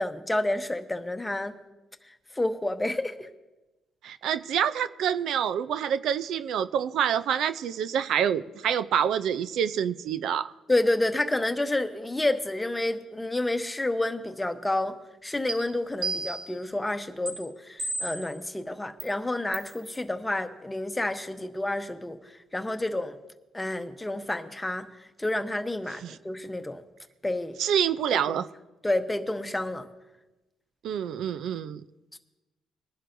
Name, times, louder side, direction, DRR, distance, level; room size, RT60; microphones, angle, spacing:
voice 1, 0.0-1.5 2.4-3.1 10.7-15.0 15.2-22.2 22.5-23.1 23.5-24.9 25.2-26.8 27.2-27.6 28.1-28.2 28.8-29.9, left 1 dB, 10° left, 8 dB, 0.9 m, -29 dB
voice 2, 4.0-10.5 26.0-26.2 27.6-28.5 30.8-31.8, right 9 dB, 80° right, 13 dB, 0.4 m, -27 dB
sound 1, 15.5-15.6 16.0-16.6 17.3-17.4 17.8-18.3 19.0-19.1 19.5-19.7, right 3 dB, 60° right, 5.4 m, -32 dB
21.0 x 11.0 x 2.6 m, 1.1 s
cardioid pair, 90°, 0 cm